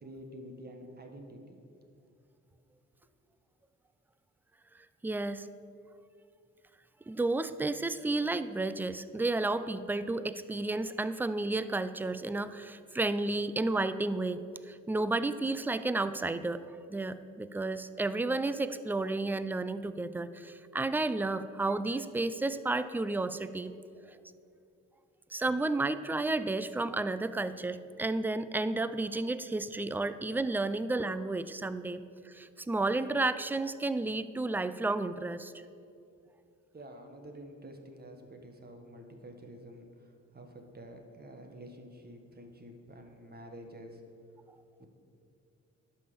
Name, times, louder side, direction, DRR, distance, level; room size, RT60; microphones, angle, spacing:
voice 1, 0.0-1.7 36.7-44.0 44.8-44.9, right 1 dB, 30° right, 4 dB, 1.3 m, -49 dB
voice 2, 5.0-5.5 7.1-23.7 25.3-35.5, right 2 dB, 5° right, 13 dB, 0.3 m, -32 dB
11.0 x 5.7 x 6.8 m, 2.6 s
cardioid pair, 100°, 30 cm